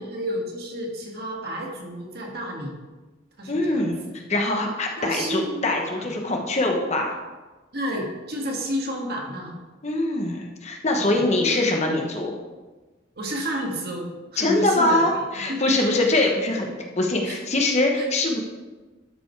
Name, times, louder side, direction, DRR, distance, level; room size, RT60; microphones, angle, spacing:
voice 1, 0.0-2.8 3.4-3.8 5.0-5.6 6.0-6.1 7.7-9.5 10.9-11.3 13.2-14.1 14.3-15.0 15.5-16.0 17.0-17.4 18.0-18.1, equal, 50° right, -1 dB, 1.9 m, -31 dB
voice 2, 3.5-4.0 4.3-7.1 9.8-12.3 14.4-18.4, left 2 dB, 30° left, 2 dB, 1.0 m, -23 dB
12.5 x 5.1 x 4.7 m, 1.2 s
head